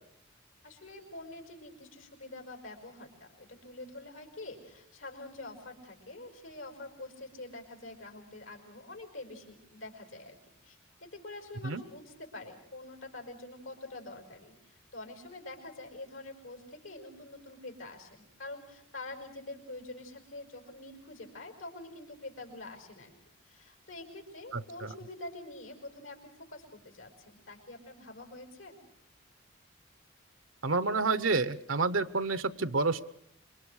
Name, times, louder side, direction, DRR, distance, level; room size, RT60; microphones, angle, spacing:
voice 1, 0.6-10.4 10.6-23.1 23.4-28.8, left 2 dB, 85° left, 3 dB, 5.6 m, -46 dB
voice 2, 30.6-33.0, right 3 dB, 80° right, 13 dB, 0.9 m, -29 dB
27.0 x 23.5 x 6.4 m, 0.69 s
head